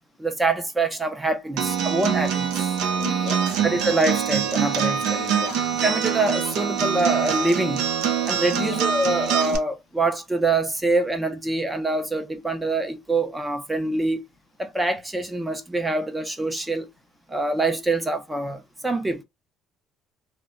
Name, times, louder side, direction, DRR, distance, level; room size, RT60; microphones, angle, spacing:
voice 1, 0.2-2.7 3.6-5.2 5.8-7.8 8.3-14.2 14.6-16.9 17.3-19.2, right 2 dB, 10° right, 0.4 m, -25 dB
Acoustic guitar, 1.6-9.6, right 8 dB, 75° right, 0.6 m, -24 dB
voice 2, 3.0-3.6 5.2-5.7 8.5-8.8, left 12 dB, 65° left, 0.3 m, -35 dB
2.1 x 2.0 x 3.6 m
cardioid pair, 150°, 0 cm